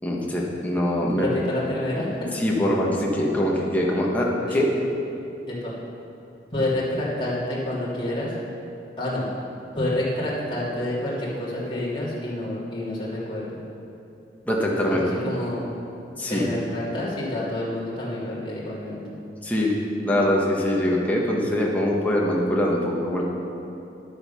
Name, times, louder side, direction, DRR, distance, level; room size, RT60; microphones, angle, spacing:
voice 1, 0.0-1.4 2.3-4.6 14.4-15.4 16.2-16.5 19.4-19.7 20.0-23.2, left 1 dB, 10° left, -3 dB, 1.3 m, -23 dB
voice 2, 1.2-2.3 4.5-4.6 5.5-5.7 6.5-8.3 9.0-9.3 9.7-13.6 14.9-15.7 16.3-19.0, left 1 dB, 25° left, -8 dB, 2.6 m, -28 dB
11.0 x 7.9 x 5.7 m, 2.8 s
head